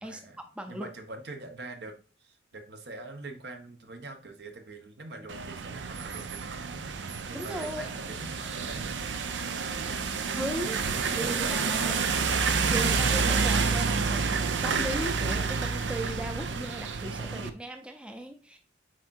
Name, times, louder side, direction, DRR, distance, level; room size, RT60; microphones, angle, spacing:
voice 1, 0.0-8.8 9.5-10.2 10.6-12.0, right 2 dB, 60° right, 5 dB, 1.1 m, -44 dB
voice 2, 0.6-0.9 7.3-7.9 10.4-12.0 12.7-18.6, right 1 dB, 5° right, 5 dB, 0.5 m, -37 dB
sound 1, 5.3-17.5, right 5 dB, 80° right, 0.6 m, -29 dB
8.0 x 4.6 x 2.6 m, 0.35 s
head